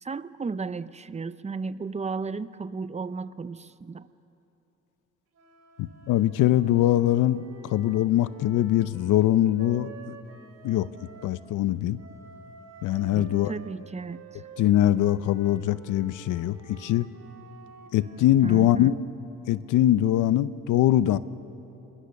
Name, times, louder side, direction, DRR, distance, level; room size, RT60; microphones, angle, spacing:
voice 1, 0.0-4.1 13.1-14.4 18.4-19.0, right 4 dB, 20° right, 15 dB, 0.7 m, -34 dB
sound 1, 5.3-11.4 12.0-18.6, right 5 dB, 55° right, 3.2 m, -50 dB
voice 2, 5.8-10.2 10.6-10.9 11.2-12.0 12.8-13.5 14.6-17.1 17.9-19.0 19.5-21.2, left 13 dB, 85° left, 15 dB, 0.8 m, -22 dB
26.5 x 21.5 x 6.6 m, 2.9 s
cardioid pair, 90°, 30 cm